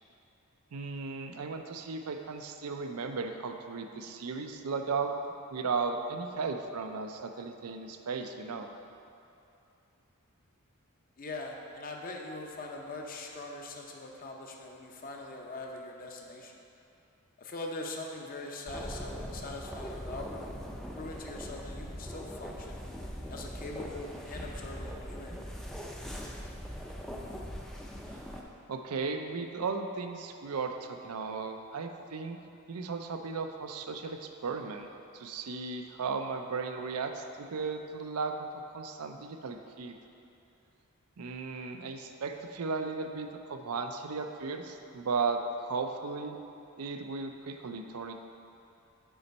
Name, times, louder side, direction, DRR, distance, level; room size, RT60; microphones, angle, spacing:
voice 1, 0.7-5.1 5.5-8.7 28.1-28.3 28.7-32.4 32.7-34.9 35.1-38.5 38.7-39.9 41.2-46.4 46.8-48.1, right 4 dB, 85° right, 5 dB, 0.5 m, -35 dB
voice 2, 11.2-16.6 17.4-20.5 21.0-22.8 23.3-25.4, left 2 dB, 40° left, 1 dB, 0.7 m, -42 dB
sound 1, 18.7-28.4, equal, ahead, 0.4 m, -41 dB
7.0 x 4.2 x 5.3 m, 2.7 s
head